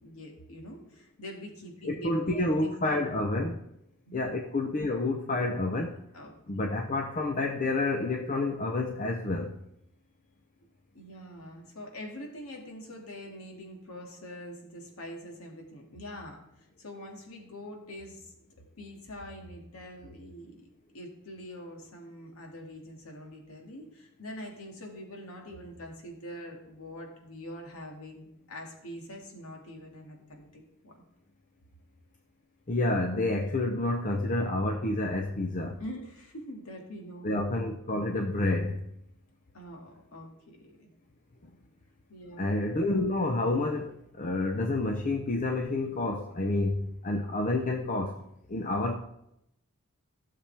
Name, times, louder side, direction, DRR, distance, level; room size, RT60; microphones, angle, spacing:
voice 1, 0.0-3.1 4.1-4.3 6.1-6.7 10.9-18.3 18.8-20.7 20.9-31.0 35.8-37.3 39.5-40.9 42.1-42.5, equal, 85° left, 2.1 m, -44 dB
voice 2, 1.8-3.6 4.1-6.0 6.5-9.6 32.7-35.8 37.2-38.8 42.4-48.2 48.5-49.0, left 2 dB, 40° left, 0.7 m, -29 dB
16.0 x 6.8 x 3.4 m
head